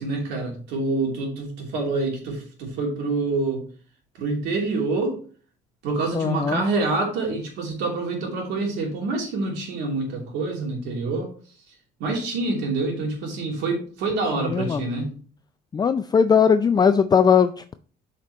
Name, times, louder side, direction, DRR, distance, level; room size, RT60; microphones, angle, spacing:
voice 1, 0.0-3.6 4.2-5.2 5.8-11.3 12.0-15.2, right 3 dB, 90° right, 0 dB, 2.9 m, -26 dB
voice 2, 6.1-6.6 14.5-14.9 15.7-17.8, left 6 dB, 25° left, 10 dB, 0.4 m, -19 dB
8.6 x 5.2 x 3.0 m, 0.41 s
cardioid pair, 110°, 17 cm